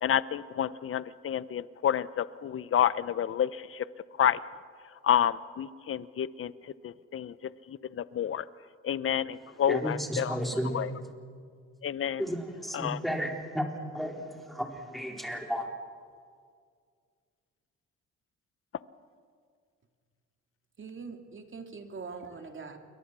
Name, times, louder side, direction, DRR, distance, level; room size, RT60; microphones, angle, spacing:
voice 1, 0.0-3.8 4.2-4.4 5.0-6.5 6.8-7.3 7.7-8.4 8.8-10.4 10.7-10.9 11.8-12.2 12.7-13.0, left 9 dB, 45° left, 16 dB, 0.8 m, -29 dB
voice 2, 9.7-10.8 12.2-15.7, equal, ahead, 1 dB, 4.0 m, -33 dB
voice 3, 20.8-22.8, right 4 dB, 40° right, 5 dB, 2.8 m, -42 dB
28.5 x 23.0 x 6.2 m, 2.1 s
cardioid pair, 90°, 30 cm